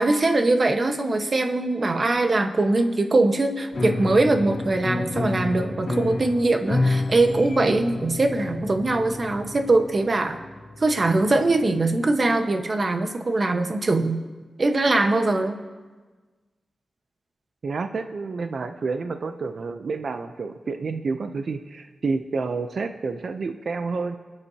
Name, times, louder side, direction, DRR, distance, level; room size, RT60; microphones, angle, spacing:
voice 1, 0.0-10.4 10.8-14.2 14.6-15.6, right 2 dB, 40° right, 5 dB, 1.2 m, -22 dB
Piano, 3.7-12.2, left 2 dB, 70° left, 2.3 m, -30 dB
voice 2, 17.6-24.2, right 4 dB, 60° right, 7 dB, 0.6 m, -29 dB
29.5 x 9.9 x 2.9 m, 1.3 s
wide cardioid pair, 105°, 0 cm